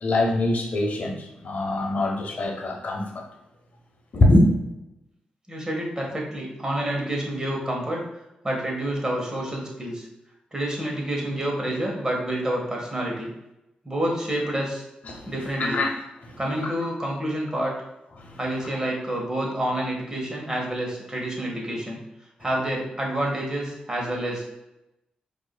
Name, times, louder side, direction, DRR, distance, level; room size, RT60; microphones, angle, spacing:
voice 1, 0.0-3.3 4.1-4.5 15.0-15.3 15.6-15.9 16.2-16.4 18.2-18.4, left 1 dB, 60° left, 1 dB, 0.8 m, -23 dB
voice 2, 5.5-8.0 8.4-10.1 10.5-13.3 13.8-14.8 15.3-15.8 16.4-17.7 18.4-22.0 22.4-24.4, right 1 dB, 20° right, -2 dB, 1.4 m, -28 dB
4.6 x 2.7 x 2.2 m, 0.92 s
cardioid pair, 60°, 3 cm